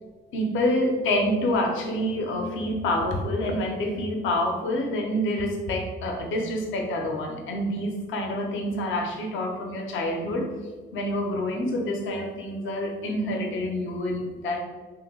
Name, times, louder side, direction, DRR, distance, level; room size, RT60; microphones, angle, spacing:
voice 1, 0.3-10.5 10.9-14.6, left 1 dB, 80° left, 2 dB, 0.6 m, -27 dB
3.1 x 2.0 x 3.5 m, 1.4 s
cardioid pair, 90°, 20 cm